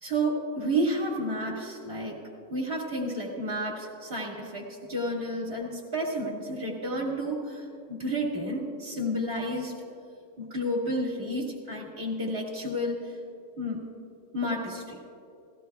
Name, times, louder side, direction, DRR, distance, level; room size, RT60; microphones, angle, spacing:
voice 1, 0.0-2.2 2.5-9.7 10.4-13.2 13.6-13.8 14.3-15.0, equal, 30° right, -4 dB, 2.0 m, -31 dB
19.0 x 16.0 x 2.3 m, 2.5 s
omnidirectional pair, 2.0 m